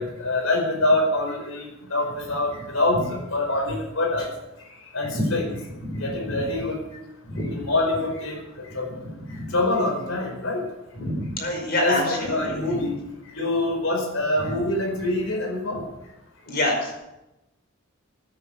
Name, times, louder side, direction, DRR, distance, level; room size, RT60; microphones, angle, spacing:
voice 1, 0.0-4.3 4.9-5.5 6.0-6.8 7.5-8.9 9.5-10.7 11.8-12.9 13.4-15.8, left 2 dB, 85° left, 2 dB, 4.9 m, -25 dB
voice 2, 11.0-12.6 16.5-17.0, left 1 dB, 50° left, 1 dB, 5.2 m, -26 dB
14.5 x 9.7 x 6.9 m, 0.93 s
head